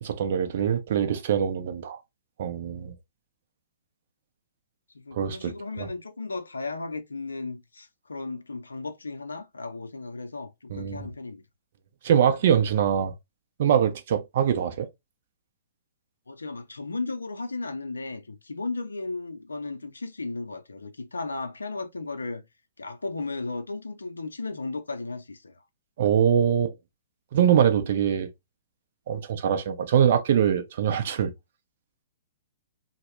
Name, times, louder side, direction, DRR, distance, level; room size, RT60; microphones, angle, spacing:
voice 1, 0.0-2.0 2.4-2.9 5.1-5.5 5.8-5.9 10.7-11.1 12.0-13.1 13.6-14.9 26.0-26.7 27.3-28.3 29.1-31.3, right 9 dB, 50° right, 0.5 m, -23 dB
voice 2, 4.9-11.4 16.3-22.4 22.8-25.5, left 3 dB, 80° left, 0.4 m, -35 dB
2.1 x 2.1 x 3.1 m
figure-of-eight pair, 115°, 0 cm